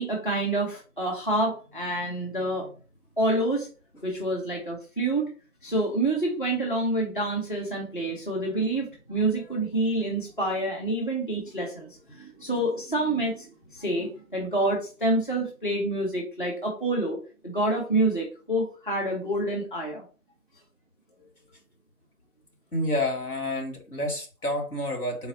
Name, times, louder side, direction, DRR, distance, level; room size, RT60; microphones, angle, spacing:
voice 1, 0.0-2.7 3.2-3.7 4.0-5.3 5.6-20.0, right 1 dB, 35° left, -1 dB, 0.7 m, -27 dB
voice 2, 22.7-25.3, left 1 dB, 80° left, 2 dB, 1.8 m, -29 dB
4.0 x 2.3 x 3.9 m, 0.36 s
figure-of-eight pair, 170°, 45 cm